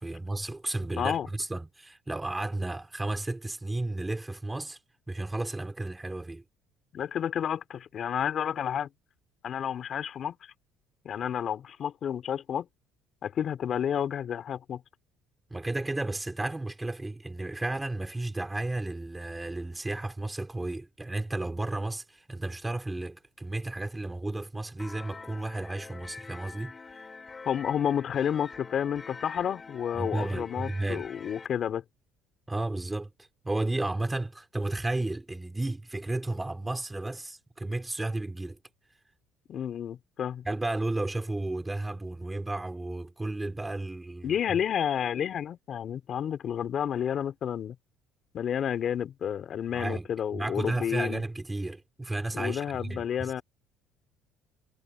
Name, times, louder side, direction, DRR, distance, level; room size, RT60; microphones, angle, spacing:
voice 1, 0.0-4.8 5.1-6.4 15.5-27.1 29.9-31.1 32.5-33.1 33.4-38.6 40.4-44.6 49.7-50.1 50.3-53.3, right 2 dB, 10° right, 3.3 m, -33 dB
voice 2, 0.9-1.3 6.9-8.9 9.4-10.5 11.0-12.7 13.2-14.8 27.4-31.8 39.5-40.4 44.2-47.8 48.3-51.2 52.3-53.4, left 9 dB, 45° left, 3.0 m, -30 dB
sound 1, 24.8-31.5, left 4 dB, 25° left, 5.6 m, -45 dB
cardioid pair, 120°, 0 cm